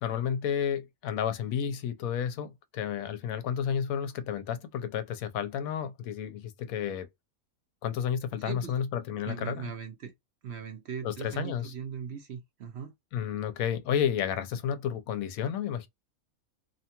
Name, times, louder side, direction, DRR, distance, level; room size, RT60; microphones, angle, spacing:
voice 1, 0.0-7.1 7.8-9.7 11.0-11.7 13.1-15.9, left 8 dB, 85° left, 1.0 m, -31 dB
voice 2, 8.4-8.8 9.2-10.1 10.4-12.9, right 7 dB, 65° right, 0.7 m, -39 dB
2.8 x 2.2 x 2.8 m
omnidirectional pair, 1.5 m